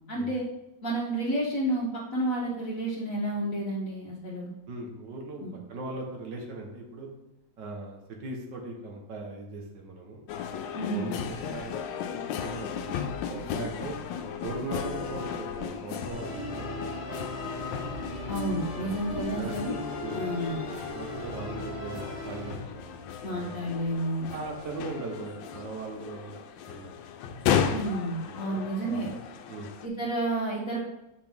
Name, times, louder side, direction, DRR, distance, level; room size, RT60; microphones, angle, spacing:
voice 1, 0.1-0.4 0.8-4.5 5.4-5.5 10.7-11.0 18.3-19.7 20.1-20.6 23.2-24.3 27.7-29.2 29.8-30.8, right 1 dB, 55° left, -4 dB, 1.3 m, -30 dB
voice 2, 4.7-5.4 5.7-7.1 7.6-10.2 10.9-12.0 12.2-13.0 13.3-14.0 14.4-17.1 18.8-20.2 20.9-23.0 23.2-23.7 24.3-26.4 26.7-26.9 28.4-29.0 29.5-29.7, right 3 dB, 75° right, 1 dB, 1.9 m, -39 dB
sound 1, 10.3-29.9, left 8 dB, 85° left, 1.3 m, -35 dB
Musical instrument, 16.1-22.5, equal, 40° right, 2.4 m, -38 dB
7.7 x 5.1 x 3.5 m, 0.92 s
omnidirectional pair, 2.0 m